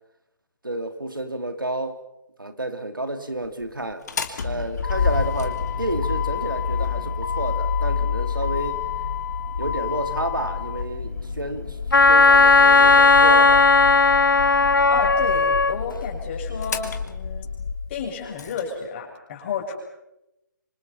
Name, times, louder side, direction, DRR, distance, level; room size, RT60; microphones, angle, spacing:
voice 1, 0.6-2.0 2.4-4.0 4.4-8.8 9.6-13.7, right 1 dB, 90° right, 7 dB, 3.0 m, -30 dB
Motor vehicle (road), 3.9-18.6, left 6 dB, 55° left, 2.8 m, -28 dB
Wind instrument woodwind instrument, 11.9-15.8, left 3 dB, 80° left, 1.0 m, -15 dB
voice 2, 14.9-17.5 17.9-19.8, left 5 dB, 35° left, 1 dB, 7.3 m, -31 dB
27.0 x 26.5 x 5.8 m, 0.91 s
figure-of-eight pair, 140°, 11 cm